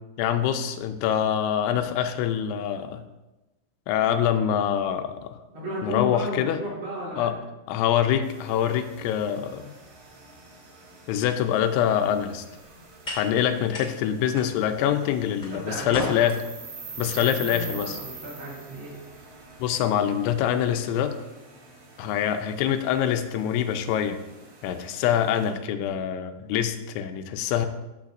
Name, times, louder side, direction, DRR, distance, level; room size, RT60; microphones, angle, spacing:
voice 1, 0.2-3.0 3.9-5.4 5.8-6.6 7.2-7.4 7.7-9.7 11.1-12.4 13.1-16.4 17.0-18.0 19.6-21.1 22.0-24.2 24.6-27.7, left 9 dB, 90° left, 8 dB, 3.0 m, -25 dB
voice 2, 5.5-7.3 15.5-16.3 17.1-19.0, equal, 40° right, -6 dB, 3.3 m, -34 dB
sound 1, 8.2-25.5, right 4 dB, 75° right, 4.1 m, -45 dB
sound 2, 11.9-19.9, left 1 dB, 25° left, 1.1 m, -41 dB
14.5 x 6.5 x 2.5 m, 1.0 s
omnidirectional pair, 5.2 m